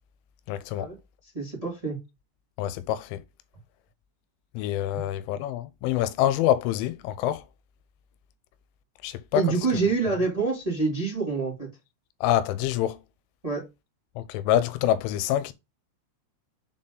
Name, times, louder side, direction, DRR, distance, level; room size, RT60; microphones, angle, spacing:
voice 1, 0.5-0.9 2.6-3.2 4.5-7.4 9.0-9.4 12.2-13.0 14.2-15.5, left 12 dB, 90° left, 3.1 m, -26 dB
voice 2, 1.3-2.0 4.9-5.0 9.3-11.7 13.4-13.6, right 4 dB, 10° right, 1.7 m, -26 dB
7.0 x 4.2 x 3.8 m
omnidirectional pair, 5.5 m